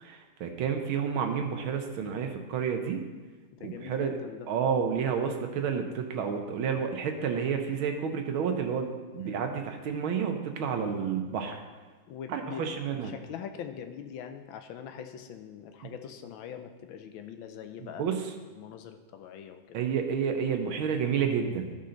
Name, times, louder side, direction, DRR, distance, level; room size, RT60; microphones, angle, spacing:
voice 1, 0.0-3.0 3.6-4.1 4.5-11.6 12.3-13.1 15.8-15.9 17.8-18.2 19.7-21.7, right 7 dB, 80° right, 5 dB, 1.7 m, -30 dB
voice 2, 3.5-4.5 9.1-9.4 12.1-18.0 18.5-19.8, left 8 dB, 80° left, 7 dB, 1.4 m, -43 dB
13.0 x 5.5 x 3.9 m, 1.4 s
omnidirectional pair, 2.3 m